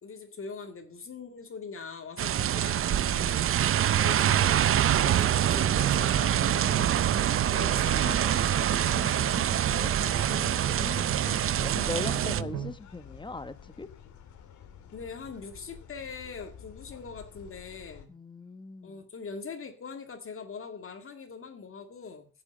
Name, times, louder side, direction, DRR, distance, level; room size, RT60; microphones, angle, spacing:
voice 1, 0.0-3.5 4.0-10.6 14.9-18.1 18.8-22.3, left 5 dB, 45° left, 2.1 m, -42 dB
sound 1, 2.2-12.4, right 11 dB, 45° right, 0.5 m, -25 dB
sound 2, 5.0-12.7, right 6 dB, 85° right, 3.1 m, -36 dB
sound 3, 10.4-18.1, left 8 dB, 75° left, 2.0 m, -50 dB
voice 2, 10.8-11.3 11.6-13.9 18.1-19.0, left 2 dB, 15° left, 1.1 m, -39 dB
10.5 x 7.2 x 7.8 m
cardioid pair, 90°, 30 cm